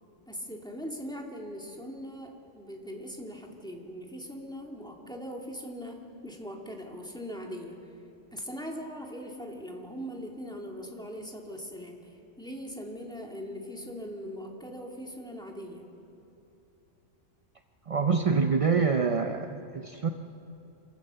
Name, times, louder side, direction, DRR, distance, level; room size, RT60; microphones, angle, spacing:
voice 1, 0.3-6.0 6.2-7.8 8.3-15.8, equal, 5° left, 0 dB, 2.0 m, -40 dB
voice 2, 17.9-20.1, right 5 dB, 45° right, 6 dB, 0.4 m, -26 dB
26.0 x 15.5 x 6.8 m, 2.8 s
omnidirectional pair, 1.4 m